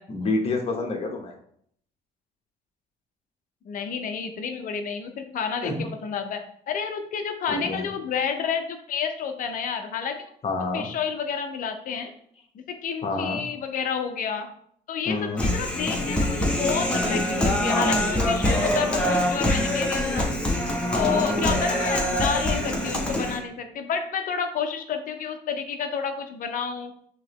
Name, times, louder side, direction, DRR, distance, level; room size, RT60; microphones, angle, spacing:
voice 1, 0.1-1.3 5.6-5.9 7.5-7.9 10.4-10.9 13.0-13.5 15.1-15.5 20.9-21.3, left 3 dB, 35° left, 2 dB, 0.9 m, -28 dB
voice 2, 3.6-6.4 6.7-10.2 10.7-12.1 12.5-14.5 14.9-20.3 21.0-26.9, left 6 dB, 55° left, 6 dB, 0.6 m, -30 dB
Human voice, 15.4-23.4, left 1 dB, 5° left, 0.9 m, -24 dB
4.7 x 2.9 x 3.0 m, 0.65 s
cardioid pair, 110°, 17 cm